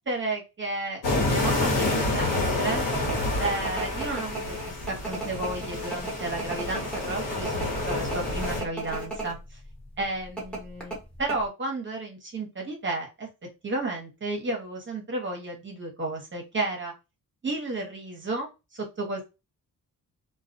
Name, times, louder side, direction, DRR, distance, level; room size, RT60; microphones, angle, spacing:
voice 1, 0.1-2.8 3.4-9.6 10.0-13.3 13.6-16.9 17.4-19.2, right 2 dB, 35° right, 0 dB, 1.0 m, -32 dB
sound 1, 1.0-8.6, left 2 dB, 60° left, 1.2 m, -28 dB
sound 2, 2.7-9.3 9.6-9.8 10.4-11.4, right 1 dB, 5° left, 1.1 m, -35 dB
2.4 x 2.3 x 2.6 m, 0.26 s
cardioid pair, 110°, 35 cm